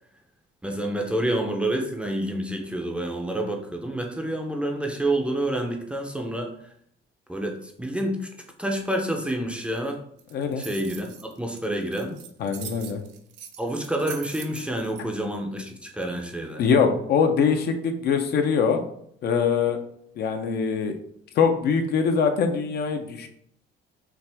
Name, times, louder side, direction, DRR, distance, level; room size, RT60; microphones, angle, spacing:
voice 1, 0.6-6.7 7.3-8.3 8.6-10.0 10.6-12.2 13.6-16.6, right 1 dB, 5° right, 2 dB, 0.6 m, -28 dB
sound 1, 10.2-15.0, right 8 dB, 60° right, 0.6 m, -42 dB
voice 2, 10.3-10.6 12.4-13.0 16.6-18.8 19.2-19.8 20.2-20.9 21.4-23.3, left 6 dB, 55° left, 6 dB, 0.6 m, -23 dB
5.8 x 2.4 x 3.4 m, 0.67 s
cardioid pair, 135°, 20 cm